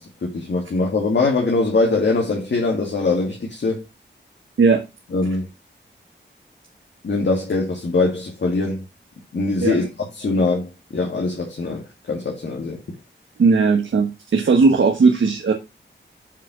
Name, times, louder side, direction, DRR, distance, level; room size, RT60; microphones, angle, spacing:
voice 1, 0.0-3.8 5.1-5.5 7.0-8.9 9.3-12.8, left 3 dB, 65° left, 2.2 m, -22 dB
voice 2, 13.4-15.5, right 4 dB, 85° right, 1.3 m, -17 dB
7.2 x 4.8 x 5.1 m
wide cardioid pair, 105°, 19 cm